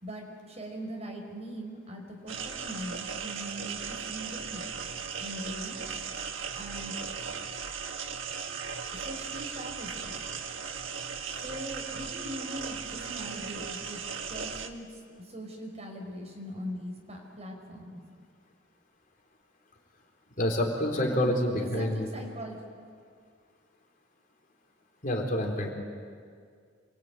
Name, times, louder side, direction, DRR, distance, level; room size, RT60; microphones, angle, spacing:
voice 1, 0.0-4.7 5.2-5.8 6.5-7.0 8.9-10.2 11.3-14.0 14.3-18.0 20.9-22.6, equal, 35° right, 1 dB, 5.4 m, -41 dB
sound 1, 2.3-14.7, right 6 dB, 80° right, 1.6 m, -37 dB
voice 2, 20.4-22.1 25.0-25.7, left 1 dB, 45° left, 0 dB, 4.2 m, -27 dB
28.0 x 22.5 x 9.3 m, 2.1 s
head